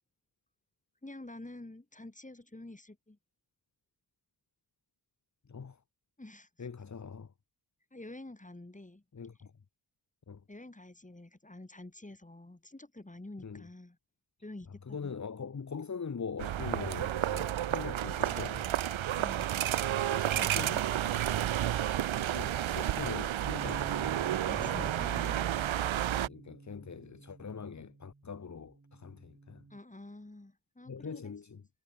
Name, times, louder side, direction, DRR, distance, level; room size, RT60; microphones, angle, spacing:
voice 1, 1.0-3.2 6.2-6.5 7.9-9.0 10.5-14.0 14.4-15.1 19.2-19.8 20.1-20.8 24.4-25.5 29.7-31.3, left 2 dB, 15° left, 6.5 m, -48 dB
voice 2, 5.4-5.8 6.6-7.3 9.1-9.5 10.3-10.4 13.4-13.7 14.7-18.7 20.3-21.2 22.1-25.4 26.3-29.7 30.9-31.7, left 5 dB, 40° left, 1.2 m, -43 dB
sound 1, 16.4-26.3, right 11 dB, 85° right, 0.8 m, -31 dB
sound 2, 23.5-29.8, right 3 dB, 25° right, 2.4 m, -50 dB
wide cardioid pair, 135°, 46 cm